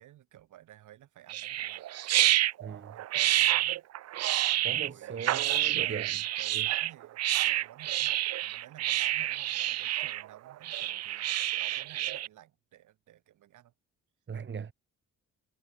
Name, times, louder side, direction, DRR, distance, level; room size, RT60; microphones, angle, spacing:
voice 1, 0.0-1.8 2.3-3.8 4.5-11.3 11.6-13.7, right 13 dB, 80° right, 4.4 m, -54 dB
sound 1, 1.3-12.3, right 14 dB, 55° right, 0.5 m, -29 dB
voice 2, 2.6-3.0 4.6-6.1 6.5-6.7 14.3-14.7, right 6 dB, 40° right, 2.0 m, -39 dB
cardioid pair, 90°, 30 cm